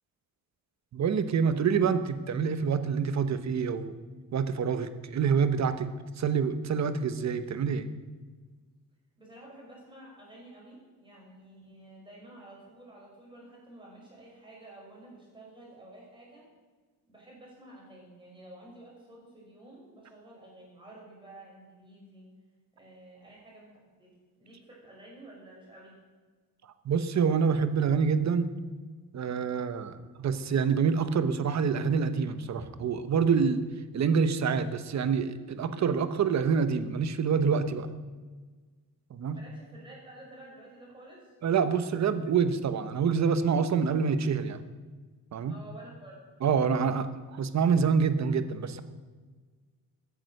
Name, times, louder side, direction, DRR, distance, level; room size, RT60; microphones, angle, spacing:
voice 1, 0.9-4.0 4.3-5.9 6.2-7.9 26.8-28.5 29.1-33.6 33.9-37.9 39.1-39.4 41.4-44.6 45.3-45.5 46.4-48.8, right 6 dB, 50° right, 11 dB, 1.0 m, -26 dB
voice 2, 9.2-16.4 17.1-22.3 22.7-26.0 39.3-41.4 45.5-46.2, right 1 dB, 15° right, -4 dB, 5.7 m, -51 dB
15.5 x 10.0 x 6.5 m, 1.4 s
wide cardioid pair, 180°, 36 cm